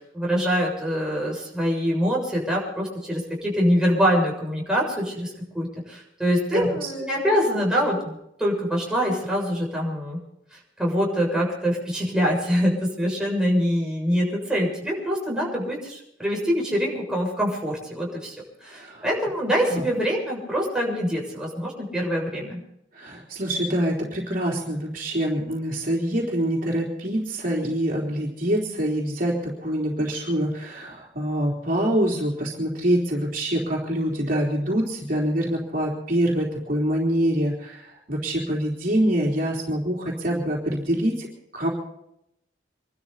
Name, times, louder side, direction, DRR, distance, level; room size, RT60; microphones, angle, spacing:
voice 1, 0.1-10.2 10.5-18.3 18.6-22.6, equal, 5° right, -3 dB, 6.9 m, -24 dB
voice 2, 6.5-6.9 18.7-19.1 19.7-19.8 22.9-41.3 41.5-41.7, right 1 dB, 50° right, -2 dB, 3.8 m, -25 dB
27.0 x 13.0 x 4.1 m, 0.77 s
head